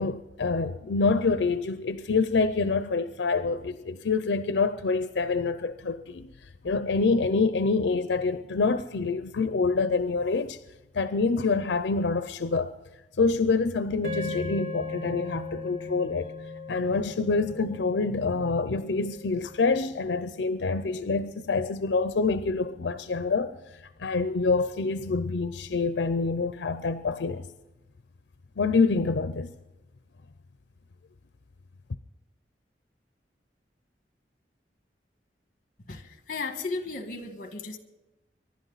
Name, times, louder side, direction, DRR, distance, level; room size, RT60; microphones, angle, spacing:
voice 1, 0.0-6.3 6.6-10.6 10.9-12.7 13.2-16.3 16.7-23.6 24.0-27.5 28.6-29.5, left 4 dB, 85° left, 0.5 m, -26 dB
sound 1, 14.0-22.4, left 3 dB, 45° right, 1.8 m, -40 dB
voice 2, 35.9-37.8, left 3 dB, 50° left, 1.5 m, -35 dB
25.0 x 11.5 x 4.0 m
head